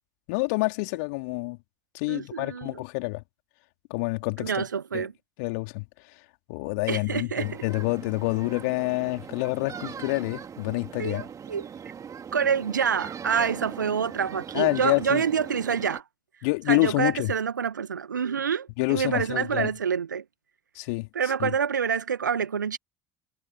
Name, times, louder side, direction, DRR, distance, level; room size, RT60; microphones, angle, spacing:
voice 1, 0.3-1.6 1.9-3.2 3.9-4.6 4.9-5.1 5.4-5.8 6.5-11.3 14.5-15.2 16.4-17.3 18.8-19.7 20.7-21.1 21.4-21.5, left 28 dB, 65° left, 3.1 m, -27 dB
voice 2, 2.1-2.8 4.4-5.1 6.9-7.6 11.0-11.7 12.3-16.0 16.7-20.2 21.1-22.8, right 7 dB, 80° right, 1.7 m, -27 dB
sound 1, 7.4-16.0, right 7 dB, 35° right, 3.1 m, -40 dB
figure-of-eight pair, 60°, 10 cm